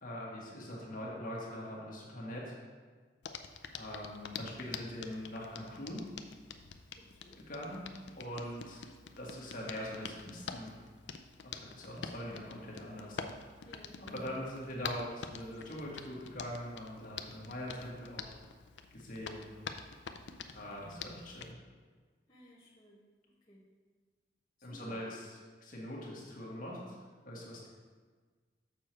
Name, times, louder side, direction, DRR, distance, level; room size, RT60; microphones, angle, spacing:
voice 1, 0.0-2.5 3.7-6.0 7.5-7.8 8.1-8.8 9.2-10.8 11.5-13.2 14.0-18.3 18.9-19.4 20.5-21.5 24.6-26.8 27.2-27.7, equal, 50° left, -4 dB, 1.7 m, -42 dB
Hands, 3.2-21.5, left 6 dB, 80° left, 0.5 m, -47 dB
voice 2, 7.0-7.5 13.6-14.4 22.3-23.1 23.4-23.7 24.6-25.1, left 1 dB, 20° left, -8 dB, 1.4 m, -57 dB
6.8 x 6.5 x 4.5 m, 1.5 s
head